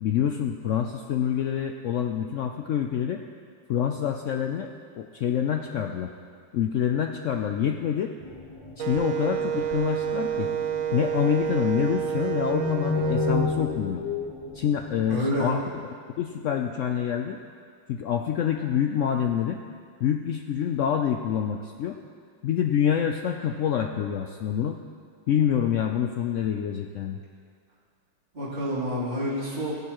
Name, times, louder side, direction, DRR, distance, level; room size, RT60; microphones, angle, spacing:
voice 1, 0.0-3.2 3.7-4.7 5.0-6.1 6.5-8.1 8.8-10.5 10.9-14.0 14.5-15.8 16.2-17.4 17.9-19.6 20.0-22.0 22.4-24.8 25.3-27.2, left 9 dB, 85° left, 4 dB, 0.6 m, -26 dB
sound 1, 8.2-15.2, left 3 dB, 20° left, 0.9 m, -33 dB
Wind instrument woodwind instrument, 8.8-13.4, right 8 dB, 70° right, 0.8 m, -29 dB
voice 2, 15.1-15.5 28.3-29.7, equal, 30° right, -10 dB, 3.3 m, -28 dB
16.0 x 10.5 x 3.0 m, 2.1 s
omnidirectional pair, 1.8 m